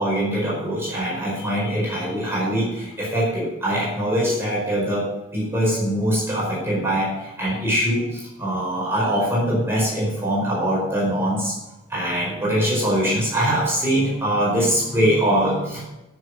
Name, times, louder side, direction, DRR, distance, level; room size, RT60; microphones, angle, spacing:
voice 1, 0.0-5.1 5.3-11.5 11.9-15.8, equal, 10° right, -5 dB, 4.8 m, -22 dB
14.0 x 7.2 x 6.2 m, 0.97 s
head